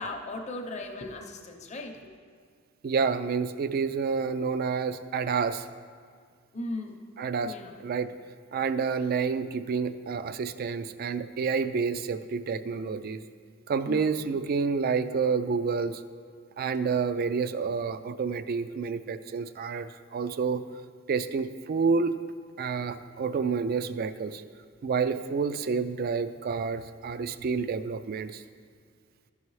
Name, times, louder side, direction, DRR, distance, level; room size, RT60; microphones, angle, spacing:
voice 1, 0.0-2.1 6.5-7.0 7.4-7.8 13.8-14.2, left 2 dB, 35° left, 3 dB, 0.7 m, -37 dB
voice 2, 2.8-5.7 7.2-7.5 7.8-8.1 8.5-13.2 13.7-16.0 16.6-20.6 21.1-22.1 22.6-24.4 24.8-28.4, right 5 dB, 45° right, 12 dB, 0.3 m, -29 dB
12.5 x 5.6 x 3.2 m, 2.1 s
head